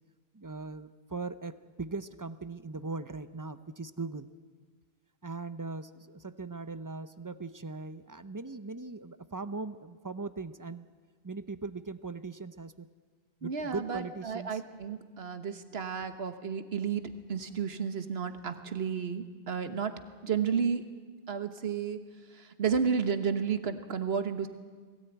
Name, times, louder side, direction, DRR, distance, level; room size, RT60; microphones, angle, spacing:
voice 1, 0.3-4.3 5.2-10.8 11.2-12.9 13.4-14.6, right 3 dB, 25° right, 12 dB, 0.6 m, -39 dB
voice 2, 13.4-17.0 17.3-19.9 20.2-20.8 21.3-22.0 22.4-24.5, right 6 dB, 85° right, 8 dB, 1.5 m, -32 dB
21.0 x 17.0 x 9.2 m, 1.5 s
omnidirectional pair, 1.0 m